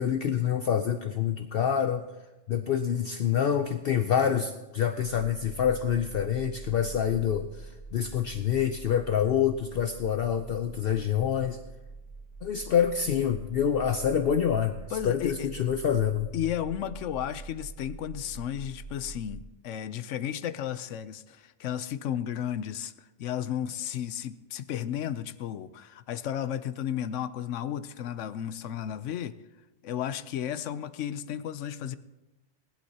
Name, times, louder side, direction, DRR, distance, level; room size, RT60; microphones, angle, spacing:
voice 1, 0.0-2.0 2.5-11.6 12.4-14.8 15.0-16.3, left 8 dB, 60° left, 7 dB, 0.7 m, -26 dB
sound 1, 5.0-19.4, right 4 dB, 25° right, 1.5 m, -45 dB
voice 2, 14.9-15.5 16.3-19.4 19.6-29.4 29.8-32.0, left 10 dB, 85° left, 14 dB, 1.0 m, -33 dB
19.5 x 11.5 x 2.8 m, 1.1 s
omnidirectional pair, 1.2 m